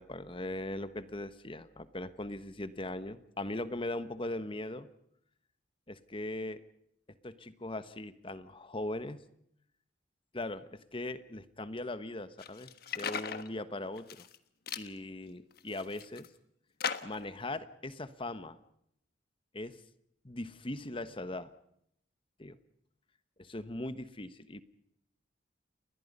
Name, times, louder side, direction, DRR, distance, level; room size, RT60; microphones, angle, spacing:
voice 1, 0.0-4.9 5.9-6.6 7.2-9.2 10.3-12.7 13.0-14.3 14.8-16.3 17.0-18.6 19.5-19.8 20.2-21.5 22.4-22.6 23.4-24.6, left 1 dB, 30° left, 13 dB, 1.2 m, -39 dB
sound 1, 12.4-13.5 14.0-14.4 14.7-14.9 15.5-16.3 16.8-17.3, left 7 dB, 55° left, 1.3 m, -38 dB
29.5 x 21.5 x 5.5 m, 0.74 s
head